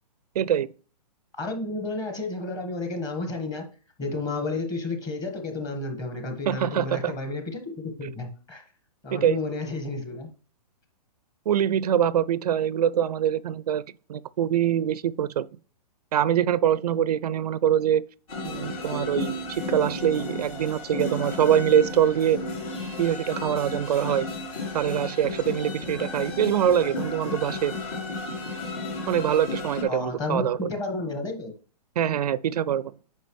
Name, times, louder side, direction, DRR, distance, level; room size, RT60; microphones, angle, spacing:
voice 1, 0.4-0.7 6.5-7.1 9.1-9.4 11.5-13.8 14.1-15.5 16.1-18.0 18.4-22.4 23.0-24.3 24.7-27.7 29.1-30.7 32.0-32.9, right 10 dB, 65° right, 0.4 m, -24 dB
voice 2, 1.3-3.7 4.0-8.6 9.0-10.3 29.9-31.5, left 2 dB, 15° left, 1.4 m, -31 dB
sound 1, 18.3-29.8, left 2 dB, 55° left, 3.7 m, -33 dB
9.1 x 5.6 x 3.1 m
hypercardioid pair, 155°, 21 cm